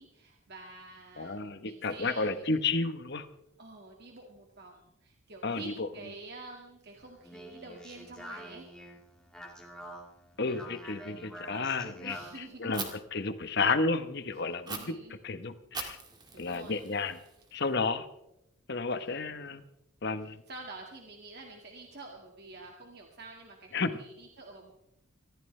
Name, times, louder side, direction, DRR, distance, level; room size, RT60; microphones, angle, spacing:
voice 1, 0.0-2.6 3.6-8.7 12.0-12.8 14.7-15.2 16.3-16.9 19.0-19.1 20.2-24.7, right 3 dB, 45° right, 1 dB, 1.9 m, -48 dB
voice 2, 1.2-3.3 5.4-5.9 10.4-12.2 12.6-14.9 15.2-16.0 16.4-17.2 17.5-18.1 18.7-19.6 20.0-20.4 23.7-23.9, left 3 dB, 50° left, 11 dB, 1.1 m, -31 dB
Speech, 7.0-12.5, equal, 5° left, 1.8 m, -46 dB
Fire, 12.7-12.9 14.7-14.8 15.7-17.7, right 4 dB, 20° right, 1.9 m, -41 dB
24.5 x 15.0 x 3.3 m, 0.82 s
head